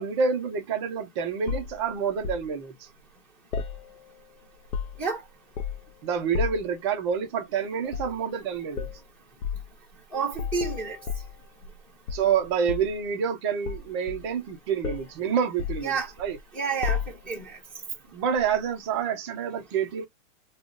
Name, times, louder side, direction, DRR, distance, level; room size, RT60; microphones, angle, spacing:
voice 1, 0.0-2.9 6.0-8.9 12.1-15.9 16.2-16.4 18.1-20.0, right 7 dB, 20° right, 0.3 m, -28 dB
sound 1, 1.5-2.5 3.5-4.3 4.5-5.1 5.5-5.9 6.3-6.7 7.9-8.2 8.7-9.0 9.4-9.7 10.3-11.8 12.1-13.0 13.6-14.5 14.8-15.1 15.6-16.4 16.8-17.4 18.4-18.5, left 7 dB, 75° left, 0.8 m, -33 dB
voice 2, 10.1-11.0 15.8-16.1 16.5-17.6, right 5 dB, 5° left, 0.7 m, -30 dB
3.6 x 2.0 x 2.4 m
hypercardioid pair, 145°, 43 cm